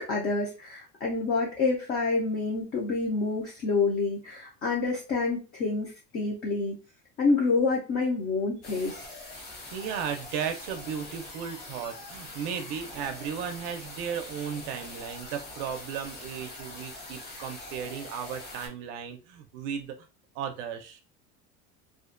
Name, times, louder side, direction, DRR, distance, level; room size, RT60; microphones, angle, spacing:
voice 1, 0.0-6.8 7.2-9.1, left 3 dB, 30° left, 0.4 m, -28 dB
sound 1, 8.6-18.7, left 2 dB, 55° left, 1.1 m, -43 dB
voice 2, 9.7-20.0 20.3-21.0, right 7 dB, 75° right, 0.5 m, -35 dB
2.4 x 2.1 x 2.4 m
cardioid pair, 175°, 32 cm